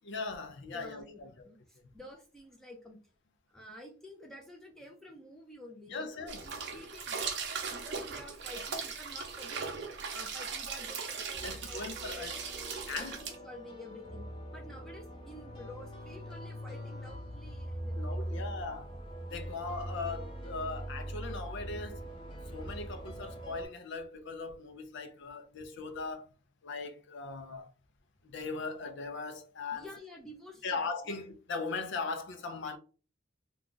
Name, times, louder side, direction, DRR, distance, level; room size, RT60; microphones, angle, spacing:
voice 1, 0.0-1.5 5.9-6.5 11.4-12.3 12.9-13.2 17.9-19.0 19.3-22.0 22.5-26.3 26.6-27.7 28.2-29.9 30.6-32.8, left 4 dB, 65° left, 0.5 m, -39 dB
voice 2, 0.7-3.0 3.5-7.3 7.7-9.9 10.1-12.5 12.9-14.2 14.5-18.4 25.2-25.3 29.7-31.2, left 1 dB, ahead, 0.5 m, -50 dB
sound 1, 6.3-13.4, right 5 dB, 60° right, 0.7 m, -39 dB
sound 2, 11.3-23.7, right 1 dB, 25° left, 0.9 m, -42 dB
2.4 x 2.3 x 3.8 m
head